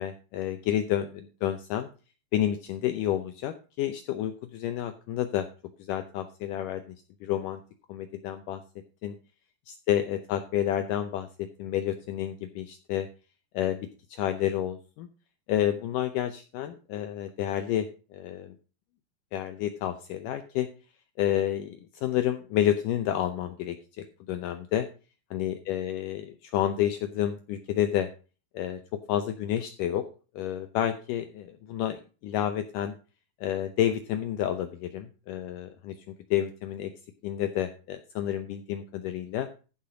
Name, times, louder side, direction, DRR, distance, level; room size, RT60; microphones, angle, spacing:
voice 1, 0.0-1.9 2.3-5.5 5.8-7.0 7.2-7.6 7.9-8.6 9.0-9.1 9.7-13.1 13.5-13.8 14.1-15.1 15.5-18.6 19.3-20.7 21.2-24.9 25.3-28.1 28.5-30.1 30.4-32.9 33.4-36.0 36.3-36.9 37.2-39.5, left 11 dB, 85° left, 8 dB, 1.8 m, -30 dB
14.5 x 5.7 x 5.0 m, 0.35 s
omnidirectional pair, 4.7 m